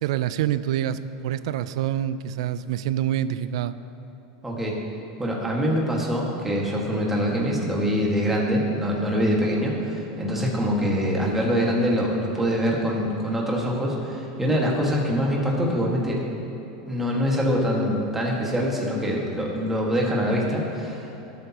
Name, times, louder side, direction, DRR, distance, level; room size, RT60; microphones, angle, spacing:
voice 1, 0.0-3.8, right 11 dB, 75° right, 14 dB, 0.4 m, -26 dB
voice 2, 4.4-4.8 5.2-16.2 16.9-21.1, equal, 10° right, -3 dB, 1.8 m, -24 dB
17.5 x 8.0 x 3.0 m, 3.0 s
supercardioid pair, 140°, 3 cm